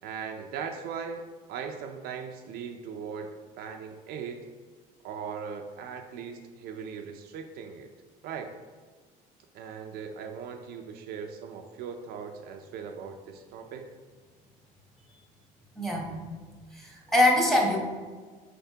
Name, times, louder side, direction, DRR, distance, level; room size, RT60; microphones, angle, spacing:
voice 1, 0.0-4.5 5.0-7.9 8.2-8.5 9.5-13.9, right 6 dB, 65° right, 5 dB, 0.4 m, -39 dB
voice 2, 15.8-16.1 16.7-17.8, left 1 dB, ahead, -1 dB, 1.0 m, -23 dB
5.6 x 3.3 x 2.8 m, 1.5 s
supercardioid pair, 100°, 17 cm